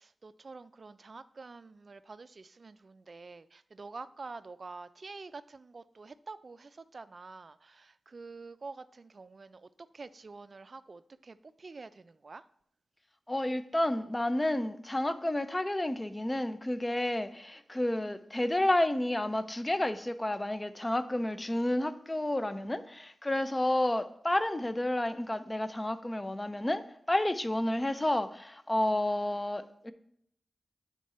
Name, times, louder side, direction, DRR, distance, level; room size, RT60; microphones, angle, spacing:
voice 1, 0.2-7.8 8.1-9.6 9.9-12.4, right 3 dB, 55° right, 0.3 m, -47 dB
voice 2, 13.3-26.8 27.1-29.9, left 1 dB, 20° left, 0.5 m, -30 dB
9.3 x 3.7 x 4.2 m
cardioid pair, 55°, 0 cm